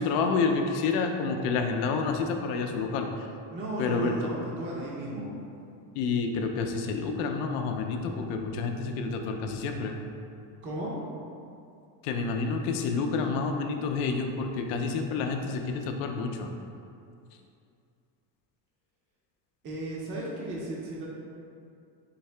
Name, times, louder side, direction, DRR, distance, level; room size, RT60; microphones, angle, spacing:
voice 1, 0.0-3.1 3.8-4.1 6.0-10.0 12.0-16.5, left 4 dB, 75° left, 4 dB, 0.5 m, -29 dB
voice 2, 3.5-5.3 10.6-11.0 19.6-21.1, right 1 dB, 25° right, -4 dB, 0.4 m, -35 dB
4.0 x 2.7 x 3.2 m, 2.5 s
cardioid pair, 140°, 47 cm